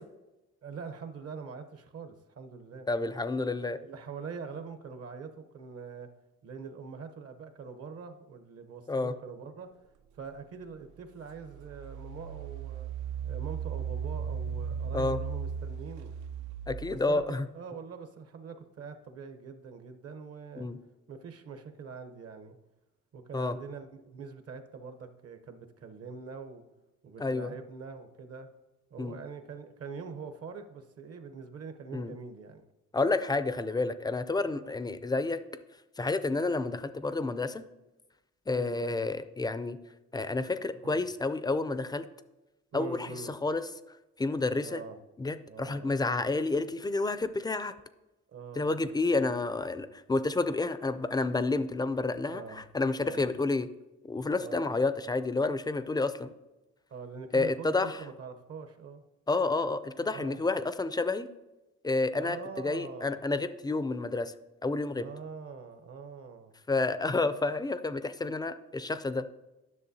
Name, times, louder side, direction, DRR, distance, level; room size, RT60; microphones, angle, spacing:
voice 1, 0.6-2.9 3.6-6.1 6.4-9.7 10.1-12.9 13.2-16.1 16.9-17.2 17.5-20.7 21.1-22.6 23.1-26.6 27.0-28.5 28.9-32.6 33.7-33.8 34.5-34.7 38.5-39.1 40.7-41.0 42.7-43.3 44.6-45.0 45.5-45.9 48.3-49.3 52.3-52.7 53.0-53.3 54.4-54.7 56.9-59.0 60.1-60.4 62.1-63.2 65.0-66.5, right 5 dB, 50° right, 8 dB, 0.8 m, -44 dB
voice 2, 2.9-3.8 8.9-9.1 14.9-15.2 16.7-17.5 20.6-20.8 23.3-23.5 27.2-27.5 29.0-29.2 31.9-32.1 32.9-35.4 36.0-37.6 38.5-39.8 40.1-42.1 42.7-43.6 44.2-44.8 45.2-47.7 48.6-53.7 54.0-56.3 57.3-58.0 59.3-61.3 61.8-64.3 64.6-65.0 66.7-69.2, left 3 dB, 15° left, 12 dB, 0.3 m, -30 dB
Engine, 10.5-10.6 11.2-17.2, right 7 dB, 75° right, 0.4 m, -37 dB
10.5 x 6.2 x 2.7 m, 1.0 s
cardioid pair, 90°, 30 cm